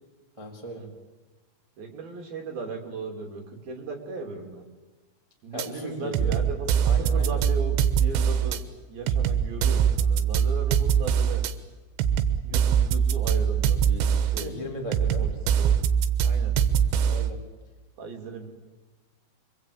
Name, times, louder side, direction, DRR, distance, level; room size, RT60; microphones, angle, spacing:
voice 1, 0.4-0.8 5.5-6.4 6.8-7.4 14.4-15.3 17.1-17.4, equal, 10° right, 0 dB, 3.0 m, -36 dB
voice 2, 1.8-4.6 5.4-8.6 8.9-11.4 12.4-14.5 14.9-15.7 16.2-16.6 18.0-18.5, right 4 dB, 55° right, 3 dB, 4.7 m, -37 dB
sound 1, 5.6-5.7 6.1-8.6 9.1-11.5 12.0-14.5 14.9-17.3, right 8 dB, 90° right, 3.5 m, -23 dB
25.5 x 24.5 x 8.6 m, 1.2 s
omnidirectional pair, 5.2 m